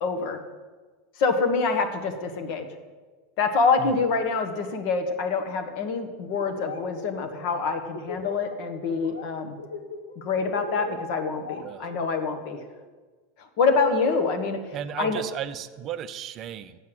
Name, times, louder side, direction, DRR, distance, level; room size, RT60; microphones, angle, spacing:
voice 1, 0.0-0.4 1.2-2.6 3.4-9.5 10.2-12.6 13.4-14.6 15.0-15.2, left 4 dB, 55° left, 6 dB, 1.3 m, -26 dB
Laughter, 6.4-6.8 7.1-8.5 8.9-9.3 9.6-12.4, left 3 dB, 80° left, 1.0 m, -37 dB
voice 2, 14.7-16.8, right 10 dB, 40° right, 12 dB, 0.5 m, -35 dB
8.4 x 7.3 x 7.7 m, 1.4 s
figure-of-eight pair, 85°, 0 cm